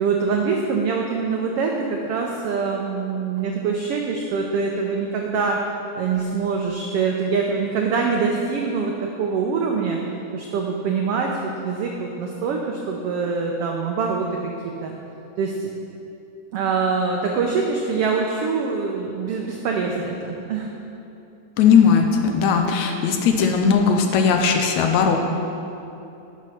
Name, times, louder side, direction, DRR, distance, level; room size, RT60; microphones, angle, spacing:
voice 1, 0.0-5.6 5.9-10.0 10.3-14.5 14.8-14.9 15.4-15.7 16.5-20.7, right 5 dB, 90° right, 1 dB, 1.3 m, -24 dB
voice 2, 21.6-25.2, left 6 dB, 75° left, 4 dB, 1.9 m, -18 dB
11.0 x 6.4 x 5.7 m, 2.9 s
omnidirectional pair, 3.6 m